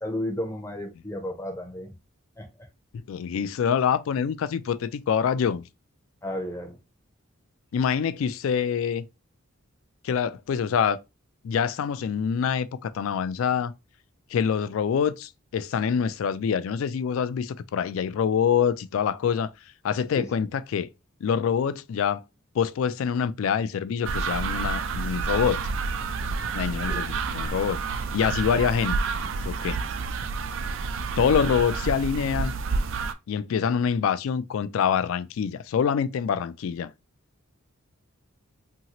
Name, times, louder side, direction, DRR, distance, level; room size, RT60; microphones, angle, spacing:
voice 1, 0.0-1.9 2.4-2.7 6.2-6.8 20.1-20.3 26.9-27.0, left 1 dB, 15° left, 0.5 m, -33 dB
voice 2, 3.1-5.6 7.7-9.0 10.0-11.0 11.4-13.7 14.3-19.5 19.8-20.9 21.2-22.2 22.5-25.6 26.5-29.0 29.4-29.8 31.2-32.5 33.3-36.9, left 7 dB, 70° left, 0.3 m, -25 dB
sound 1, 24.0-33.1, right 4 dB, 60° right, 0.3 m, -29 dB
2.8 x 2.8 x 2.9 m
head